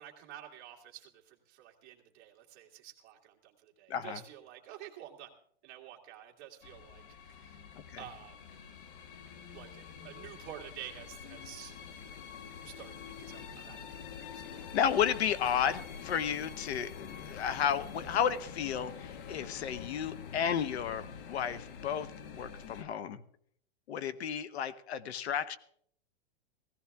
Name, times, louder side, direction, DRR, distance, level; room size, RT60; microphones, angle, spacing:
voice 1, 0.0-5.3 5.6-7.0 7.3-7.6 8.0-8.7 9.5-11.7 12.6-14.8, right 11 dB, 30° right, 1 dB, 2.0 m, -50 dB
voice 2, 3.9-4.2 7.9-8.0 14.7-22.1 22.3-23.2 23.9-25.6, left 8 dB, 75° left, 16 dB, 1.0 m, -32 dB
sound 1, 6.6-22.8, left 7 dB, 55° left, 1.3 m, -46 dB
16.5 x 16.5 x 3.5 m, 0.65 s
supercardioid pair, 165°, 33 cm